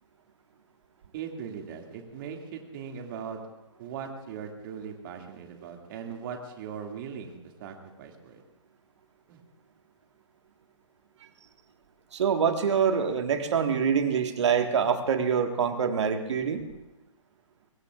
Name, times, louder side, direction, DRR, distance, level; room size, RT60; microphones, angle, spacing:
voice 1, 1.1-3.4 3.8-8.4 9.3-9.4, right 7 dB, 40° right, 2 dB, 2.4 m, -39 dB
voice 2, 12.1-16.6, right 7 dB, 60° right, 6 dB, 1.7 m, -25 dB
24.0 x 21.5 x 2.5 m, 1.0 s
figure-of-eight pair, 130°, 17 cm